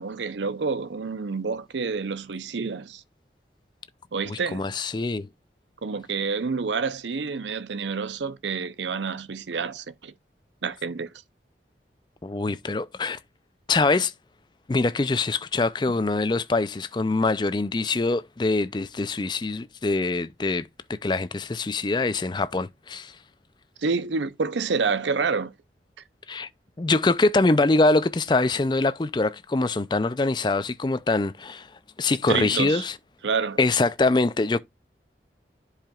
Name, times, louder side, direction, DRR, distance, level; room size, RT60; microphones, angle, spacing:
voice 1, 0.0-3.0 4.1-4.6 5.8-10.1 10.6-11.1 23.8-25.5 32.3-32.9 33.2-33.6, right 5 dB, 85° right, 0.6 m, -28 dB
voice 2, 4.3-5.3 12.2-13.2 13.7-14.1 14.7-20.7 21.0-23.1 26.3-26.5 26.8-31.7 32.0-32.9 33.6-34.6, left 3 dB, 25° left, 0.4 m, -24 dB
10.5 x 4.9 x 2.4 m
head